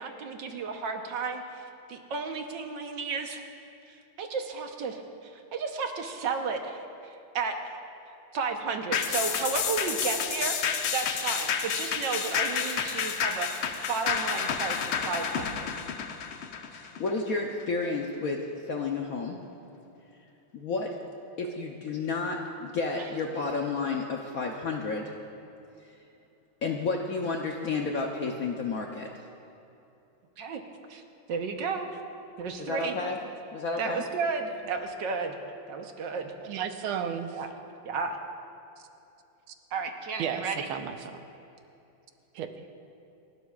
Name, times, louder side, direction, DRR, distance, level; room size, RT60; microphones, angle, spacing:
voice 1, 0.0-3.4 3.9-7.8 8.3-15.7 23.0-23.1 30.4-30.6 30.9-31.0 31.3-31.9 32.4-32.9 33.8-35.4 35.7-36.2 37.3-37.5 37.8-38.2 39.7-40.7, right 5 dB, 65° right, 4 dB, 1.6 m, -33 dB
sound 1, 8.9-17.6 18.0-18.1, left 7 dB, 85° left, 1.7 m, -30 dB
voice 2, 16.7-18.4 18.7-19.4 20.5-21.0 21.4-25.1 26.6-29.1 32.6-33.2 33.5-34.0, left 3 dB, 60° left, 1 dB, 0.9 m, -31 dB
voice 3, 36.4-37.3 40.2-41.2 42.3-42.7, right 8 dB, 90° right, 8 dB, 1.6 m, -33 dB
28.5 x 12.0 x 2.4 m, 2.9 s
omnidirectional pair, 2.3 m